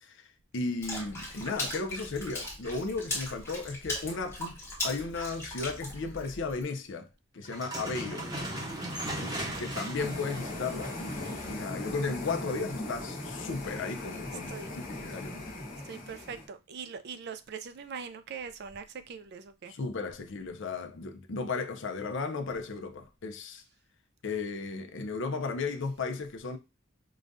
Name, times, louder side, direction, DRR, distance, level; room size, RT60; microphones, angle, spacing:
voice 1, 0.5-4.6 4.8-7.1 7.3-8.3 9.2-15.5 19.7-23.6 24.2-26.6, left 4 dB, 60° left, 0.5 m, -35 dB
Water / Splash splatter, 0.8-6.6, left 1 dB, 10° left, 1.0 m, -38 dB
sound 1, 7.4-11.6, right 1 dB, 20° right, 0.8 m, -37 dB
voice 2, 9.2-9.7 14.5-14.7 15.8-19.7, right 6 dB, 50° right, 0.4 m, -42 dB
sound 2, 9.9-16.5, left 1 dB, 40° left, 1.2 m, -39 dB
5.0 x 2.3 x 2.6 m
head